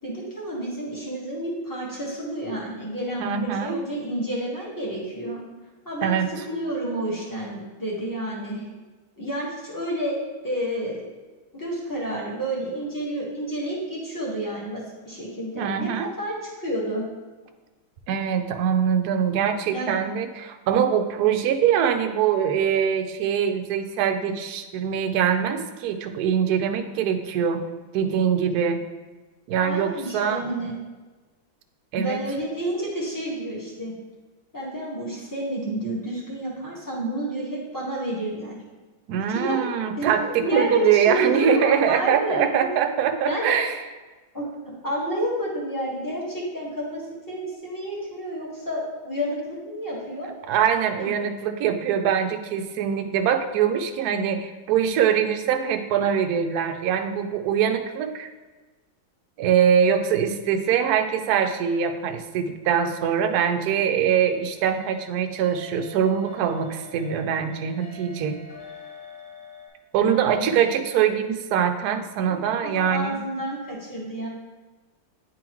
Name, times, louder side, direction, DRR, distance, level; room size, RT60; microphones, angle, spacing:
voice 1, 0.0-5.4 5.8-6.2 6.5-8.6 9.2-10.1 10.4-11.0 11.5-15.9 16.2-17.0 19.7-19.9 29.6-30.7 31.9-33.9 34.5-38.6 39.3-39.7 40.0-40.1 40.4-42.7 43.2-43.5 44.3-44.5 44.8-50.3 51.0-51.1 70.1-70.4 72.2-74.3, right 1 dB, 10° left, -5 dB, 1.3 m, -30 dB
voice 2, 3.2-3.8 6.0-6.3 15.6-16.1 18.1-27.6 27.9-28.8 29.5-30.7 31.9-32.2 39.1-43.8 50.5-58.3 59.4-68.4 69.9-73.2, right 8 dB, 70° right, 6 dB, 0.9 m, -23 dB
sound 1, 63.3-69.7, left 3 dB, 85° left, 2.0 m, -46 dB
9.8 x 3.7 x 3.0 m, 1.3 s
omnidirectional pair, 2.1 m